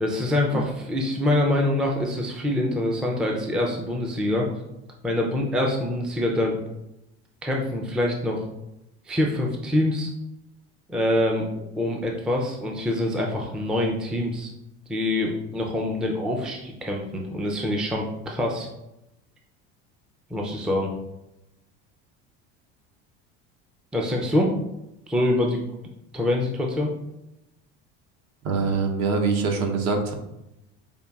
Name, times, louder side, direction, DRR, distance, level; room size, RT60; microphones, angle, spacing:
voice 1, 0.0-4.5 5.0-6.6 7.4-8.4 9.1-10.1 10.9-14.5 14.9-18.7 20.3-20.9 23.9-24.5 25.1-25.6 26.1-26.9, left 1 dB, 5° right, 0 dB, 0.4 m, -25 dB
voice 2, 28.4-30.1, right 4 dB, 55° right, 4 dB, 0.8 m, -24 dB
5.1 x 2.5 x 2.3 m, 0.87 s
supercardioid pair, 110°, 32 cm